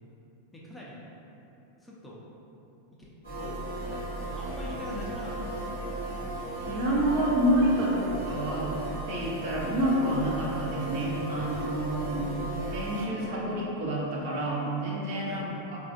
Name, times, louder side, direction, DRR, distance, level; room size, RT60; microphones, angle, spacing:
voice 1, 0.5-1.0 1.8-2.2 3.3-5.6 12.0-12.5 15.2-15.5, equal, 10° left, -6 dB, 0.6 m, -43 dB
sound 1, 3.2-13.0, right 1 dB, 90° right, 1.1 m, -36 dB
voice 2, 6.7-15.5, right 1 dB, 60° right, -5 dB, 0.8 m, -28 dB
4.1 x 2.3 x 2.6 m, 3.0 s
hypercardioid pair, 110°, 0 cm